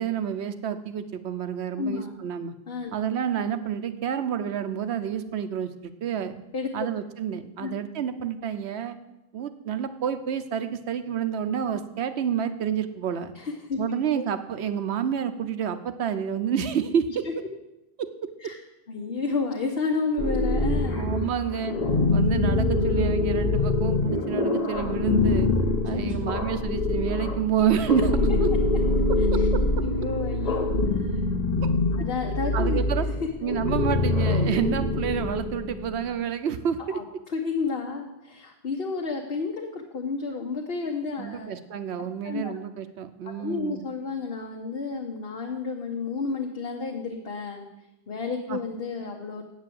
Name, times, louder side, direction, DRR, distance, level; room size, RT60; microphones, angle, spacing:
voice 1, 0.0-2.5 2.9-6.3 6.7-9.0 9.3-13.3 13.8-17.3 18.0-18.1 20.9-21.7 22.1-25.5 25.8-28.5 29.3-29.6 32.5-33.1 33.4-37.0 41.2-43.8 48.5-48.6, right 8 dB, 85° right, 11 dB, 1.0 m, -29 dB
voice 2, 1.8-2.2 2.7-2.9 6.5-6.9 7.3-7.7 13.3-13.8 14.1-14.2 18.4-18.6 18.9-21.0 25.9-26.4 29.4-29.5 29.8-31.2 31.9-32.8 33.4-33.6 36.9-37.0 37.3-41.6 42.2-42.5 43.4-47.7 48.1-49.4, left 4 dB, 65° left, 1 dB, 1.2 m, -31 dB
sound 1, 20.2-36.0, left 2 dB, 40° left, 1.0 m, -24 dB
8.5 x 7.3 x 7.6 m, 0.93 s
omnidirectional pair, 1.1 m